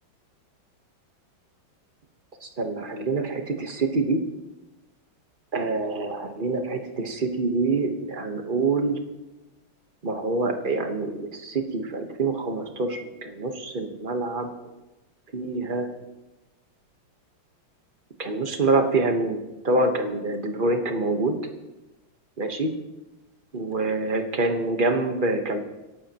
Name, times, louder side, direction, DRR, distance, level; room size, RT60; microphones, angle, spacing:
voice 1, 2.4-4.2 5.5-8.9 10.0-14.5 15.3-15.9 18.2-21.3 22.4-22.7 23.5-25.6, right 3 dB, 30° right, 5 dB, 1.1 m, -26 dB
26.0 x 11.5 x 3.0 m, 1.1 s
omnidirectional pair, 2.2 m